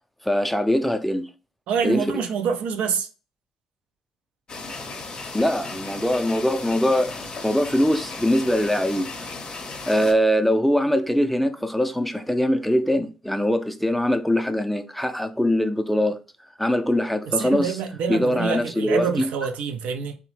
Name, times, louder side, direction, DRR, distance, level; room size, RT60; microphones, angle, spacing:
voice 1, 0.2-1.3 1.8-2.1 5.3-9.1 9.9-16.2 16.6-17.7 18.1-19.3, equal, 5° left, 0.4 m, -22 dB
voice 2, 1.7-3.1 17.4-20.2, right 6 dB, 70° right, 0.3 m, -26 dB
sound 1, 4.5-10.1, left 3 dB, 45° left, 0.6 m, -35 dB
2.6 x 2.0 x 3.0 m
hypercardioid pair, 50°, 2 cm